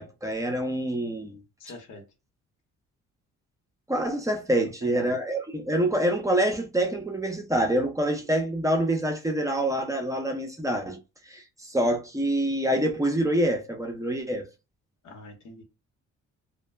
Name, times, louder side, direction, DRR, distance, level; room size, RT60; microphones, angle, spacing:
voice 1, 0.0-1.4 3.9-11.0 11.3-14.5, right 1 dB, 10° right, 0.5 m, -26 dB
voice 2, 1.6-2.0 4.8-5.1 15.0-15.6, left 2 dB, 80° left, 1.0 m, -43 dB
2.1 x 2.1 x 3.2 m
cardioid pair, 105°, 30 cm